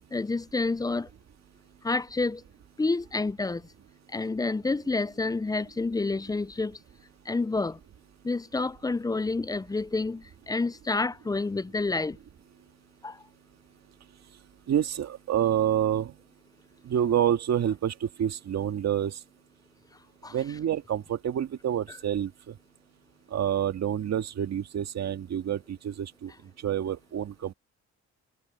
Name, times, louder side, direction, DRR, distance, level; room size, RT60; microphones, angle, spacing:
voice 1, 0.1-1.1 1.8-2.4 2.8-3.6 4.1-6.8 7.3-7.8 8.2-12.2 13.0-13.2 20.2-20.4 21.9-22.0, left 3 dB, 10° left, 0.5 m, -29 dB
voice 2, 14.7-16.1 16.8-19.2 20.3-22.5 23.3-26.3 26.6-27.5, right 10 dB, 60° right, 2.0 m, -28 dB
cardioid pair, 90°, 30 cm